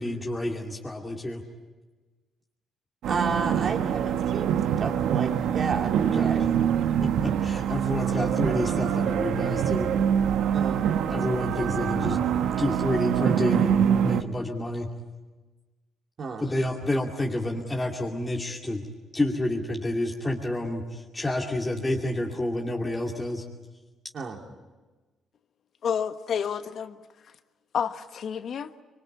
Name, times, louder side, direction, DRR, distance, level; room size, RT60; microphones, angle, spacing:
voice 1, 0.0-1.4 6.0-6.3 7.0-9.9 11.1-14.9 16.4-18.8 19.1-23.4, left 1 dB, 15° left, -2 dB, 2.5 m, -29 dB
sound 1, 3.0-14.2, right 9 dB, 80° right, 1.1 m, -25 dB
voice 2, 3.1-6.4 10.5-10.9 16.2-16.4 24.1-24.4, right 4 dB, 50° right, 2 dB, 3.6 m, -31 dB
voice 3, 25.8-27.0 27.7-28.7, left 7 dB, 60° left, 10 dB, 1.2 m, -29 dB
25.5 x 23.0 x 8.7 m, 1.3 s
cardioid pair, 90°, 0 cm